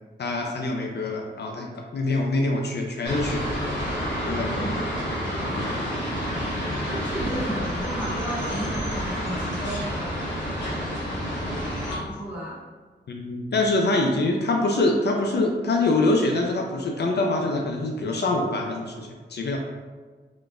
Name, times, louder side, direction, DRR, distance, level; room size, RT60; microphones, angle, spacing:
voice 1, 0.2-3.5 4.2-4.8 13.1-19.6, left 2 dB, 70° left, 1 dB, 0.5 m, -25 dB
sound 1, 3.1-11.9, equal, 85° left, 1.3 m, -29 dB
voice 2, 6.6-11.1 11.8-12.6, right 1 dB, 10° right, -8 dB, 1.4 m, -34 dB
3.7 x 3.4 x 2.5 m, 1.4 s
wide cardioid pair, 85°, 18 cm